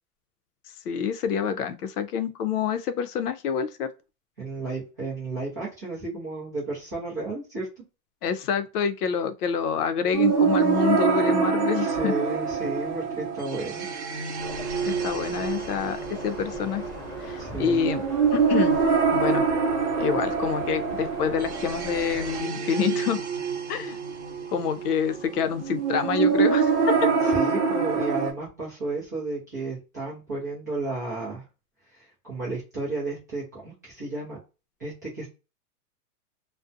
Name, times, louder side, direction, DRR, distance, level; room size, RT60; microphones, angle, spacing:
voice 1, 0.9-3.9 8.2-12.1 14.9-16.8 17.2-18.0 18.3-18.8 19.1-19.5 20.0-23.2 23.7-24.0 24.5-27.1, left 7 dB, 80° left, 0.6 m, -27 dB
voice 2, 4.4-7.7 11.8-13.9 17.4-17.8 27.2-31.4 31.9-34.4 34.8-35.3, right 2 dB, 15° right, 0.4 m, -32 dB
sound 1, 10.1-28.3, right 5 dB, 50° right, 0.8 m, -25 dB
sound 2, 14.4-22.4, equal, 15° left, 1.0 m, -39 dB
2.4 x 2.1 x 2.5 m
supercardioid pair, 170°, 45 cm